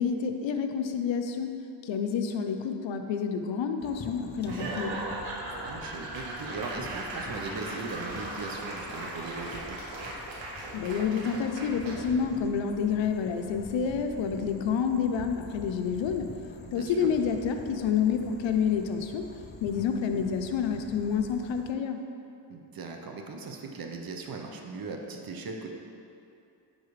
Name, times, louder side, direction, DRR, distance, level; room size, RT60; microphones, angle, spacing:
voice 1, 0.0-1.5 1.8-5.0 10.7-16.3 16.7-19.2 19.6-22.0, left 6 dB, 75° left, 6 dB, 0.7 m, -28 dB
sound 1, 3.8-21.7, left 5 dB, 25° left, 0.4 m, -47 dB
voice 2, 4.4-4.7 5.7-9.8 16.6-17.1 22.5-25.7, right 4 dB, 50° right, 3 dB, 0.8 m, -39 dB
Laughter / Applause / Crowd, 4.4-12.2, right 2 dB, 80° right, 1.1 m, -38 dB
9.4 x 4.0 x 3.2 m, 2.7 s
cardioid pair, 70°, 46 cm